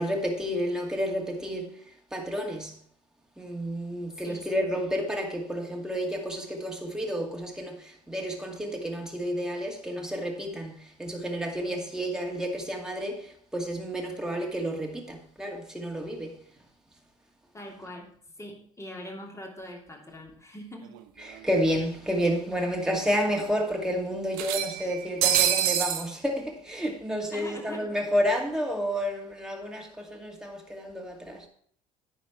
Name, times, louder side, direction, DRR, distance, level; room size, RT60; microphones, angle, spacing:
voice 1, 0.0-1.8 2.1-2.8 3.4-16.4 21.2-31.5, equal, 5° right, 2.3 m, -30 dB
voice 2, 17.5-18.1 18.4-21.0 27.3-27.9, left 1 dB, 15° left, 2.9 m, -42 dB
sound 1, 20.9-21.0 21.3-21.4 22.5-22.6 22.9-23.0 24.3-26.1, right 11 dB, 70° right, 0.9 m, -26 dB
9.5 x 5.2 x 6.1 m
hypercardioid pair, 60°, 17 cm